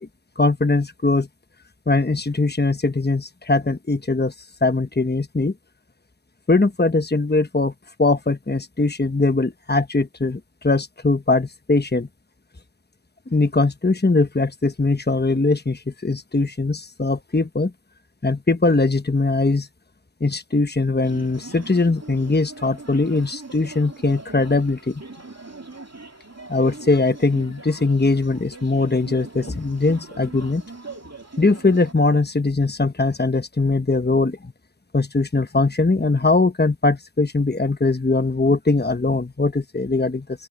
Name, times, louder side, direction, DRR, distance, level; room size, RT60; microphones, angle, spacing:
voice 1, 0.4-1.3 1.9-4.3 4.6-5.5 6.5-7.7 8.0-12.1 13.3-17.7 18.2-19.7 20.2-25.0 26.5-30.6 31.4-34.4 34.9-40.2, left 3 dB, 25° left, 1.1 m, -21 dB
sound 1, 21.0-31.9, right 3 dB, 40° right, 2.8 m, -41 dB
open air
wide cardioid pair, 40°, 40 cm